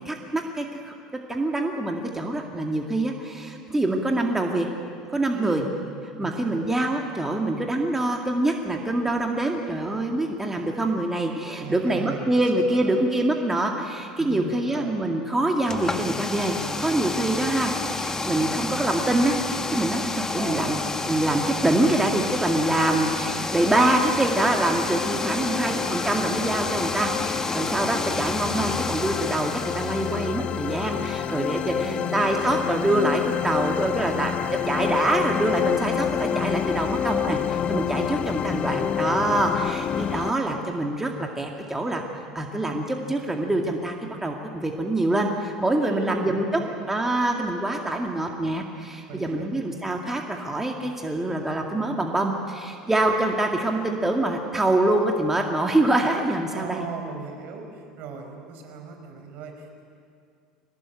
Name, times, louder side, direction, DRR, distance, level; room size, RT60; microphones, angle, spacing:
voice 1, 0.1-0.9 1.3-4.7 5.1-5.6 6.2-16.6 16.8-19.4 19.7-20.8 21.1-34.3 34.7-42.0 42.3-44.0 44.2-46.6 46.9-56.9, right 1 dB, 10° right, 2 dB, 2.1 m, -25 dB
voice 2, 5.3-5.7 6.2-6.7 11.6-12.3 12.7-13.1 14.2-14.9 20.3-20.8 25.2-25.9 31.6-32.7 38.3-38.8 45.8-46.8 49.1-49.5 56.5-59.8, right 4 dB, 55° right, 4 dB, 4.6 m, -38 dB
sound 1, 15.6-30.3, left 3 dB, 15° left, 1.6 m, -30 dB
sound 2, 23.5-40.3, left 9 dB, 35° left, 0.6 m, -29 dB
22.5 x 19.5 x 9.1 m, 2.3 s
figure-of-eight pair, 75°, 3 cm